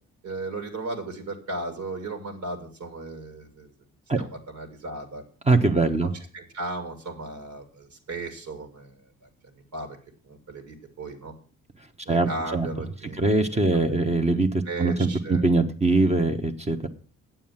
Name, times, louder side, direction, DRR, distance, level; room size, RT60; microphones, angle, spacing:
voice 1, 0.2-3.7 4.1-5.2 6.3-8.9 9.2-10.0 10.3-11.3 12.0-13.6 13.9-14.0 14.7-15.4, right 2 dB, 70° right, 5 dB, 2.6 m, -36 dB
voice 2, 5.4-6.1 12.1-12.7 13.2-16.9, right 3 dB, 20° right, 6 dB, 1.1 m, -22 dB
8.7 x 7.2 x 7.3 m, 0.41 s
cardioid pair, 90°, 30 cm